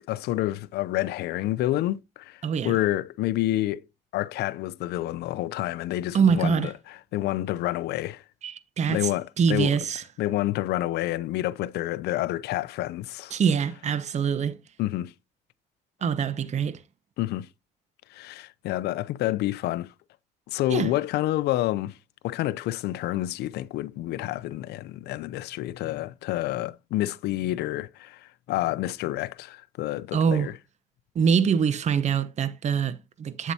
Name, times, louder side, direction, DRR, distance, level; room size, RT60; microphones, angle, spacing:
voice 1, 0.1-3.8 4.1-6.7 7.1-8.2 8.9-9.8 10.2-13.4 14.8-15.1 17.2-17.5 18.1-19.9 20.5-21.9 22.2-30.5, left 15 dB, 75° left, 0.5 m, -28 dB
voice 2, 2.4-2.8 6.1-6.7 8.4-9.1 9.4-10.0 13.3-14.6 16.0-16.8 20.7-20.9 30.1-30.5 31.1-33.5, right 6 dB, 45° right, 0.9 m, -24 dB
8.1 x 7.4 x 2.8 m
cardioid pair, 110°, 17 cm